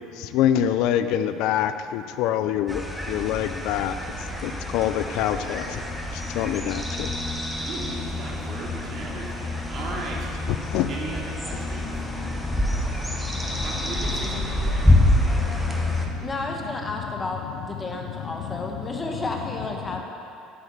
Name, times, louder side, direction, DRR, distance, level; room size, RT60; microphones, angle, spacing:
voice 1, 0.2-2.8 3.1-3.9 4.4-5.8 6.3-7.1 10.7-10.9, left 10 dB, 70° left, 11 dB, 0.5 m, -25 dB
sound 1, 2.7-16.1, left 1 dB, ahead, 1.1 m, -26 dB
voice 2, 7.6-10.3 10.9-11.9 13.6-15.0, right 2 dB, 45° right, -3 dB, 2.5 m, -36 dB
voice 3, 16.2-20.0, left 2 dB, 15° left, 1 dB, 1.0 m, -32 dB
10.0 x 7.2 x 6.9 m, 2.6 s
cardioid pair, 135°, 0 cm